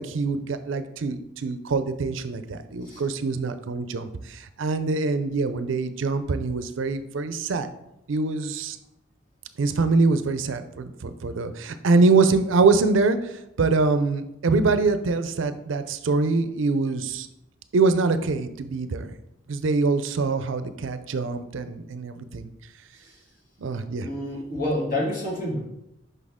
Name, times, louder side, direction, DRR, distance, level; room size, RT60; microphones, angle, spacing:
voice 1, 0.0-7.7 8.1-8.8 9.6-17.3 17.7-19.1 19.5-22.5 23.6-24.1, right 3 dB, 80° right, 11 dB, 0.5 m, -24 dB
voice 2, 24.0-25.6, left 1 dB, 45° left, -4 dB, 2.0 m, -28 dB
6.2 x 5.3 x 3.6 m, 0.85 s
head